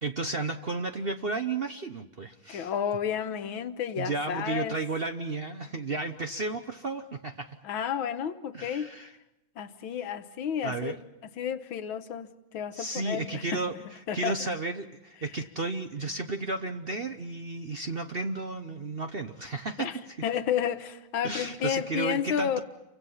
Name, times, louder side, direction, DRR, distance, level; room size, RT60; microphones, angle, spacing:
voice 1, 0.0-2.7 4.0-7.6 8.5-9.1 10.6-11.0 12.7-13.7 14.1-19.9 21.2-22.6, right 3 dB, 45° right, 0.8 m, -33 dB
voice 2, 2.5-4.8 7.6-8.9 9.6-10.9 11.4-13.6 14.1-14.3 19.8-20.0 20.2-22.6, left 8 dB, 90° left, 1.9 m, -31 dB
29.0 x 24.5 x 5.7 m
omnidirectional pair, 2.1 m